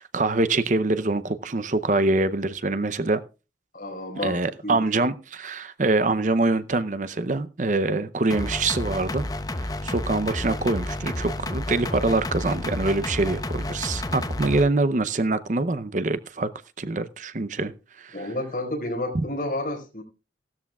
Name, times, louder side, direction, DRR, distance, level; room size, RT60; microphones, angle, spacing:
voice 1, 0.0-3.2 4.2-9.3 9.5-16.5 16.8-17.7 18.0-18.1, right 2 dB, 45° right, 0.6 m, -24 dB
voice 2, 3.7-5.0 18.1-20.0, left 1 dB, 50° left, 4.8 m, -31 dB
sound 1, 8.3-14.6, left 1 dB, 20° left, 0.7 m, -30 dB
17.0 x 13.0 x 2.4 m
head